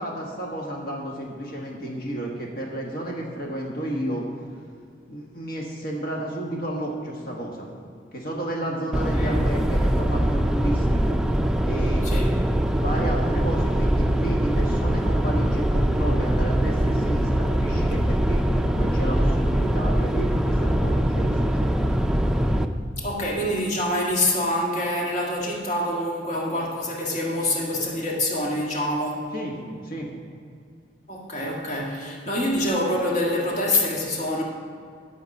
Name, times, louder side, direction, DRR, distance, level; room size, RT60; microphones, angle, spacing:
voice 1, 0.0-4.3 5.1-7.7 8.1-11.2 11.7-12.1 12.5-21.9 29.3-29.6 29.8-30.1, right 1 dB, 60° left, -2 dB, 1.5 m, -32 dB
sound 1, 8.9-22.7, equal, 5° right, 0.4 m, -22 dB
voice 2, 12.0-12.3 23.0-29.3 31.1-34.4, left 1 dB, 40° left, -2 dB, 1.7 m, -26 dB
11.5 x 7.2 x 5.4 m, 2.3 s
head